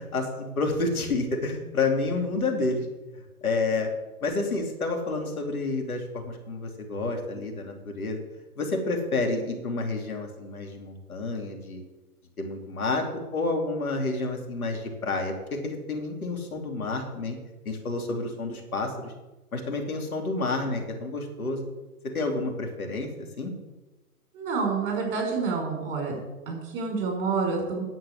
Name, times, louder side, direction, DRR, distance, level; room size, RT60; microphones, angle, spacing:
voice 1, 0.0-2.8 3.4-3.9 4.2-8.2 8.6-11.8 12.4-13.1 13.3-17.4 17.6-19.1 19.5-21.6 22.1-23.1 23.4-23.5, left 3 dB, 70° left, 2 dB, 3.0 m, -29 dB
voice 2, 24.3-26.2 26.5-27.8, right 4 dB, 35° right, 1 dB, 5.3 m, -28 dB
10.0 x 7.6 x 8.5 m, 1.1 s
figure-of-eight pair, 135°, 45 cm